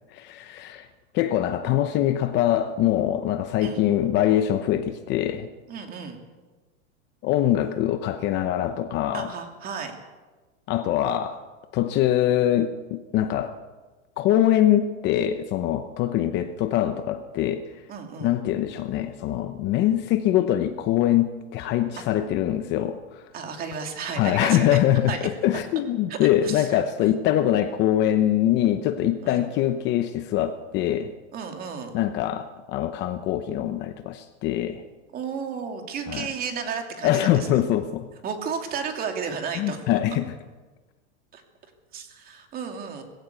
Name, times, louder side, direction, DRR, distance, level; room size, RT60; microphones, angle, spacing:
voice 1, 0.1-0.9 1.1-5.5 7.2-9.3 10.7-11.4 11.7-13.5 14.2-17.8 18.2-23.3 24.2-31.1 31.9-34.8 36.1-36.3 37.0-38.1 39.6-40.3, left 12 dB, 30° left, 9 dB, 0.8 m, -23 dB
voice 2, 5.7-6.2 9.1-9.9 17.9-18.4 22.0-22.1 23.3-24.8 25.1-25.3 26.1-27.1 29.2-29.5 31.3-32.0 35.1-37.6 38.2-39.8 40.1-40.2 41.3-41.4 41.9-43.0, right 6 dB, 25° right, 4 dB, 2.7 m, -33 dB
20.0 x 16.0 x 8.2 m, 1.3 s
supercardioid pair, 160°, 37 cm